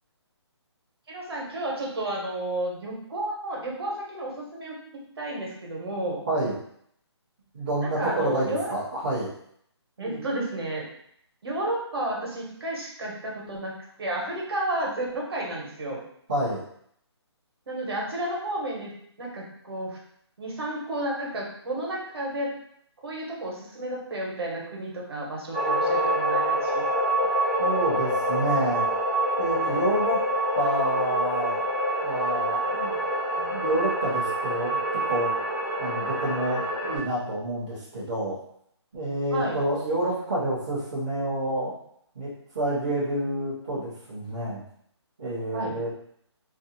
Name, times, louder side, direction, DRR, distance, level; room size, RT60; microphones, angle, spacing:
voice 1, 1.1-6.2 7.8-8.7 10.0-10.9 11.4-13.7 14.0-16.0 17.7-18.9 19.2-20.0 20.4-22.5 23.0-27.0 39.3-39.6 45.5-45.7, right 1 dB, 60° right, -2 dB, 0.9 m, -32 dB
voice 2, 7.5-9.3 10.0-10.2 16.3-16.6 27.6-28.8 29.4-30.2 30.6-31.5 32.0-33.0 33.3-35.3 35.8-38.4 38.9-41.7 42.1-44.6 45.2-46.1, right 1 dB, 15° right, -10 dB, 0.4 m, -28 dB
sound 1, 25.5-37.0, right 1 dB, 25° left, 0.9 m, -26 dB
2.6 x 2.4 x 2.6 m, 0.69 s
hypercardioid pair, 170°, 15 cm